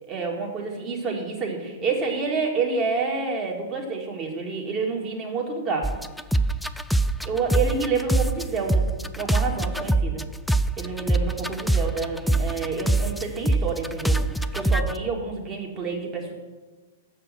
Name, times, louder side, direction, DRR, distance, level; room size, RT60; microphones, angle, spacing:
voice 1, 0.0-5.9 7.2-8.9 9.2-10.2 10.8-14.2 14.5-16.3, right 4 dB, 30° right, 0 dB, 2.1 m, -28 dB
Flute mix, 5.8-8.4 8.7-14.9, right 2 dB, ahead, 0.3 m, -23 dB
7.1 x 6.7 x 7.8 m, 1.3 s
figure-of-eight pair, 105°, 0 cm